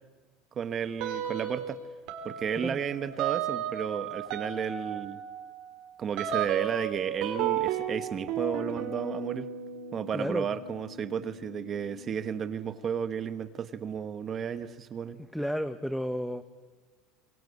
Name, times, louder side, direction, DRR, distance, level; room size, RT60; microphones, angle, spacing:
voice 1, 0.5-1.8 2.2-5.2 6.0-9.5 9.9-15.2, right 7 dB, 30° right, 12 dB, 1.1 m, -33 dB
sound 1, 1.0-1.7 2.1-12.4, right 9 dB, 60° right, 4.6 m, -34 dB
voice 2, 10.1-10.5 15.3-16.4, equal, ahead, 11 dB, 0.9 m, -32 dB
26.0 x 22.0 x 9.5 m, 1.5 s
cardioid pair, 150°, 0 cm